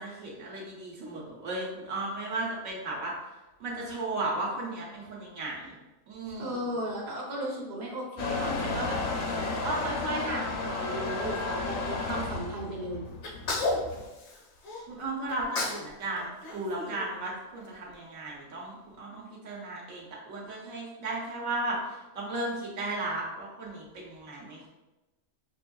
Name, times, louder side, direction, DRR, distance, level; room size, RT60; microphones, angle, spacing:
voice 1, 0.0-3.1 3.6-5.7 6.1-6.7 14.9-21.8 22.1-24.7, right 2 dB, 75° right, -3 dB, 1.3 m, -35 dB
voice 2, 6.4-9.0 9.6-13.1, right 1 dB, 40° right, -2 dB, 0.8 m, -35 dB
Motor vehicle (road) / Engine starting / Accelerating revving vroom, 8.2-14.1, left 3 dB, 55° left, 0.6 m, -33 dB
Sneeze, 13.2-14.8 15.3-15.9 16.2-17.6, left 2 dB, 85° left, 1.2 m, -33 dB
6.2 x 2.6 x 2.3 m, 1.0 s
omnidirectional pair, 1.4 m